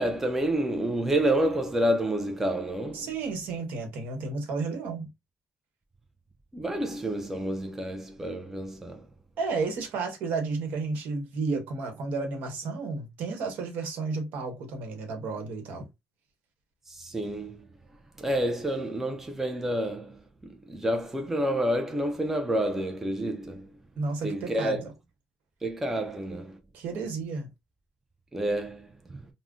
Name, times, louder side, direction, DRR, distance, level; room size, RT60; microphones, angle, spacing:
voice 1, 0.0-3.1 6.5-9.1 16.9-17.7 18.2-23.7 24.2-24.8 25.6-26.6 28.3-29.3, right 1 dB, 10° right, 0.4 m, -29 dB
voice 2, 2.9-5.1 9.4-15.9 24.0-24.8 26.7-27.5, right 4 dB, 70° right, 1.0 m, -32 dB
2.4 x 2.0 x 3.6 m
cardioid pair, 145°, 3 cm